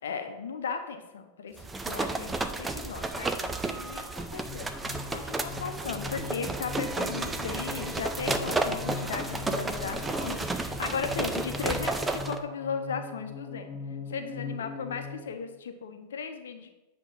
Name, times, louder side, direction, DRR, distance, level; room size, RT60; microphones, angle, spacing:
voice 1, 0.0-13.7 14.1-16.7, left 6 dB, 65° left, 6 dB, 0.8 m, -36 dB
sound 1, 1.6-12.4, right 3 dB, 10° right, 0.5 m, -32 dB
sound 2, 4.5-15.3, left 4 dB, 35° left, 1.5 m, -40 dB
8.0 x 3.4 x 5.8 m, 1.0 s
figure-of-eight pair, 90°, 0 cm